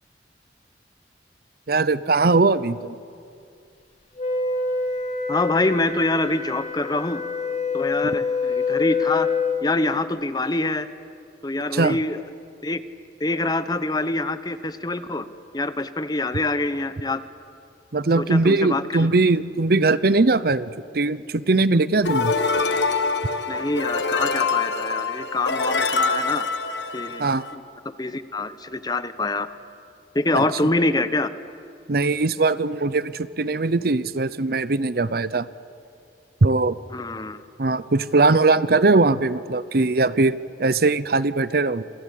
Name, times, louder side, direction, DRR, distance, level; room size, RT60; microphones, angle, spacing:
voice 1, 1.7-3.0 11.7-12.0 17.9-22.3 27.2-27.4 30.3-30.4 31.9-35.5 36.4-36.8 37.6-41.8, right 3 dB, 60° right, 16 dB, 0.7 m, -20 dB
Wind instrument woodwind instrument, 4.2-9.7, left 4 dB, 40° left, 2.5 m, -26 dB
voice 2, 5.3-7.2 7.7-9.3 9.6-10.9 11.4-12.2 12.6-12.8 13.2-15.3 15.5-17.2 18.1-19.1 23.5-26.5 26.9-27.2 27.5-29.5 30.1-31.3 36.9-37.4, left 2 dB, 25° left, 12 dB, 0.9 m, -25 dB
sound 1, 22.0-27.5, left 4 dB, 80° left, 1.5 m, -25 dB
28.0 x 23.5 x 8.5 m, 2.5 s
head